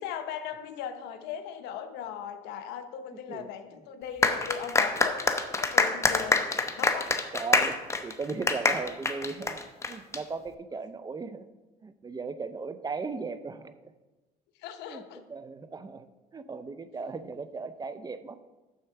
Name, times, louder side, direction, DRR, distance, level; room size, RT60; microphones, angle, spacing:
voice 1, 0.0-6.5 6.8-7.1 14.6-15.2, left 8 dB, 90° left, 8 dB, 0.8 m, -38 dB
sound 1, 4.2-10.2, left 3 dB, 15° left, 0.8 m, -26 dB
voice 2, 7.3-9.6 9.9-11.4 11.8-13.9 14.9-15.0 15.3-16.1 16.3-18.4, right 4 dB, 25° right, 12 dB, 0.5 m, -37 dB
9.4 x 4.3 x 6.7 m, 1.1 s
cardioid pair, 110°, 17 cm